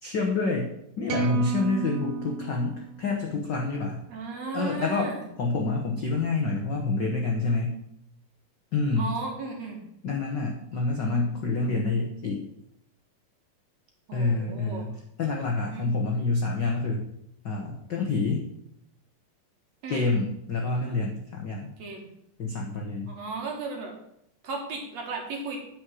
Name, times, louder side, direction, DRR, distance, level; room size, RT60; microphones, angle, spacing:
voice 1, 0.0-4.0 4.5-7.8 8.7-9.2 10.0-12.4 14.1-17.1 17.4-18.4 19.9-21.7 22.4-23.1, left 3 dB, 70° left, 0 dB, 1.0 m, -28 dB
sound 1, 1.1-3.5, right 11 dB, 80° right, 2.5 m, -33 dB
voice 2, 4.1-5.2 9.0-9.8 14.1-14.8 15.7-15.9 19.8-20.1 21.8-22.1 23.1-23.9 24.4-25.6, right 3 dB, 55° right, 1 dB, 2.8 m, -35 dB
9.4 x 5.2 x 7.7 m, 0.77 s
omnidirectional pair, 3.8 m